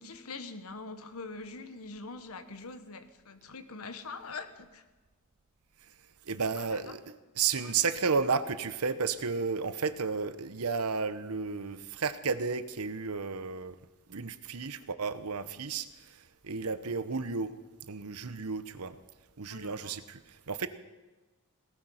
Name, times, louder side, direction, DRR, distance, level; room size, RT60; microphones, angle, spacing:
voice 1, 0.0-4.8 6.6-6.9 7.6-7.8 19.5-20.0, left 3 dB, 75° left, 10 dB, 1.3 m, -44 dB
voice 2, 6.3-13.7 14.1-15.9 16.4-17.5 17.9-18.9 19.4-20.2 20.5-20.7, right 5 dB, 85° right, 13 dB, 0.9 m, -32 dB
18.0 x 13.5 x 5.7 m, 1.2 s
head